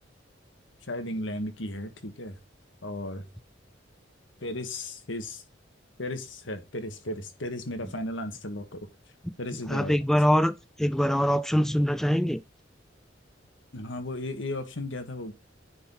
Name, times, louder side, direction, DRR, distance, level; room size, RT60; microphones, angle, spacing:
voice 1, 0.9-2.4 2.8-3.3 4.4-5.4 6.0-8.9 9.4-9.9 13.7-15.3, left 1 dB, 80° left, 1.8 m, -35 dB
voice 2, 9.7-12.4, equal, ahead, 0.3 m, -24 dB
9.9 x 4.3 x 4.2 m
head